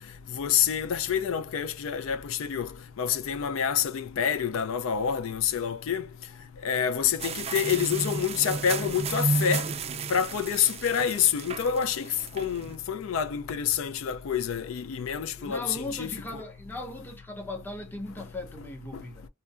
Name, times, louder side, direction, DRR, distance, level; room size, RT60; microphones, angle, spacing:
voice 1, 0.3-6.1 6.6-9.7 10.1-16.4 18.9-19.0, left 8 dB, 80° left, 0.4 m, -27 dB
sound 1, 7.2-12.8, right 4 dB, 30° right, 0.3 m, -32 dB
voice 2, 15.4-19.3, left 1 dB, 10° left, 0.7 m, -38 dB
2.7 x 2.2 x 2.4 m
head